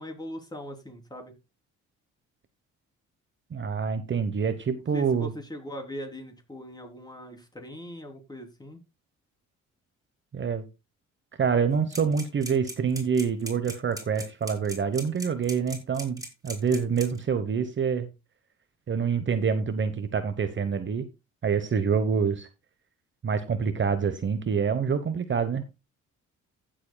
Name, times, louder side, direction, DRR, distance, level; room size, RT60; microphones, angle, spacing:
voice 1, 0.0-1.3 4.1-4.2 4.8-8.8, equal, 15° left, 3 dB, 3.4 m, -40 dB
voice 2, 3.5-5.3 10.3-10.6 11.4-18.1 18.9-21.1 21.4-22.5 23.2-25.6, right 6 dB, 40° right, 10 dB, 1.1 m, -26 dB
sound 1, 11.9-17.2, right 1 dB, 10° right, 4.1 m, -38 dB
15.5 x 7.6 x 2.3 m, 0.25 s
cardioid pair, 90°, 30 cm